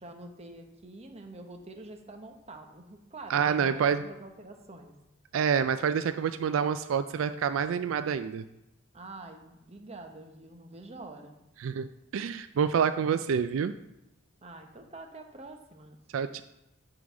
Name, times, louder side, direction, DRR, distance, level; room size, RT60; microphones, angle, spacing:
voice 1, 0.0-4.9 8.9-11.3 14.4-16.0, right 2 dB, 30° right, 5 dB, 1.0 m, -46 dB
voice 2, 3.3-4.0 5.3-8.4 11.6-13.7 16.1-16.4, right 7 dB, 75° right, 11 dB, 0.3 m, -27 dB
9.6 x 3.9 x 7.0 m, 0.92 s
head